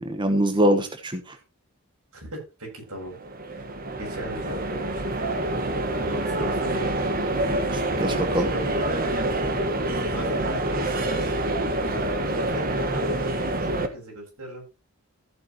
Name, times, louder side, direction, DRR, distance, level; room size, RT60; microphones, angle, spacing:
voice 1, 0.0-1.4 7.7-8.5, right 1 dB, 20° right, 6 dB, 1.1 m, -24 dB
voice 2, 2.1-3.2 3.5-3.7 4.0-5.0 6.0-7.2 8.0-9.3 10.1-11.3 12.3-14.6, right 1 dB, 80° right, 0 dB, 7.6 m, -37 dB
sound 1, 3.0-13.9, right 1 dB, 40° right, 1.6 m, -27 dB
14.5 x 8.5 x 3.1 m, 0.29 s
head